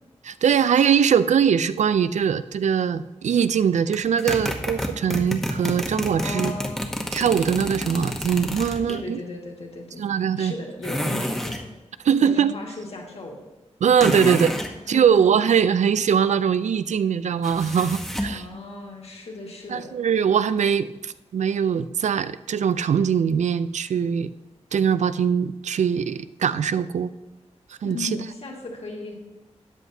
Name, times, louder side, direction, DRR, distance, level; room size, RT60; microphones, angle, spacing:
voice 1, 0.2-6.5 7.1-9.2 10.0-10.5 12.0-12.5 13.8-14.5 14.9-18.5 19.7-24.3 24.7-27.1 27.8-28.1, right 7 dB, 85° right, 14 dB, 0.4 m, -21 dB
sound 1, 3.9-9.0 10.8-11.6 14.0-14.7 17.4-18.4, equal, ahead, 1.0 m, -29 dB
voice 2, 6.1-6.8 8.9-10.0 10.4-11.6 12.2-13.5 14.9-15.2 18.3-19.9 27.8-29.2, left 2 dB, 60° left, -1 dB, 1.9 m, -36 dB
13.5 x 9.1 x 2.7 m, 1.1 s
wide cardioid pair, 100°, 12 cm